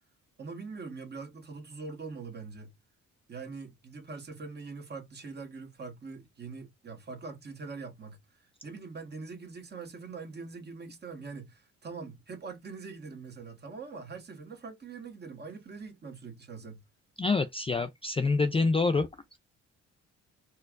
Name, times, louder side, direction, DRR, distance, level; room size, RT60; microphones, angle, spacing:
voice 1, 0.4-2.7 3.3-8.2 8.6-16.8, right 4 dB, 35° right, 1.3 m, -43 dB
voice 2, 17.2-19.1, left 3 dB, 20° left, 0.4 m, -26 dB
4.4 x 2.3 x 2.3 m
cardioid pair, 90°, 30 cm